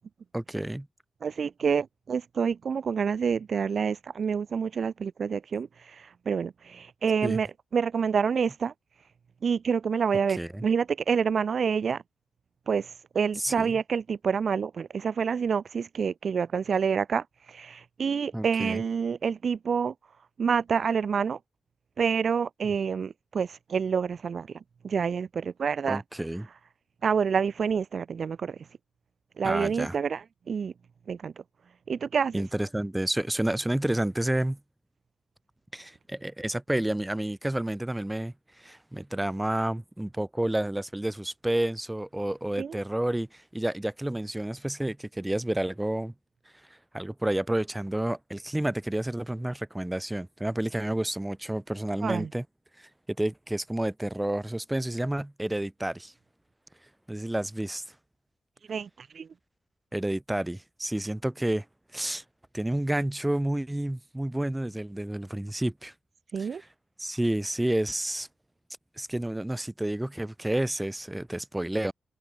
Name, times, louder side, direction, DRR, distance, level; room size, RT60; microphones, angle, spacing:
voice 1, 0.3-0.9 7.2-7.4 10.4-10.6 13.4-13.7 18.3-18.8 25.9-26.5 29.4-30.0 32.3-34.6 35.7-46.1 46.9-52.4 53.2-56.1 57.1-57.8 59.9-61.6 61.9-62.2 62.5-65.9 66.4-66.5 67.0-68.3 69.0-71.9, right 1 dB, 10° right, 1.2 m, -30 dB
voice 2, 1.2-8.7 9.0-9.1 9.4-12.0 12.7-19.9 20.4-21.4 22.0-26.0 27.0-28.7 29.4-30.7 31.1-31.3 31.9-32.4 42.6-42.8 52.0-52.3 58.7-59.3 66.3-66.6, right 6 dB, 55° right, 1.4 m, -28 dB
cardioid pair, 110°, 0 cm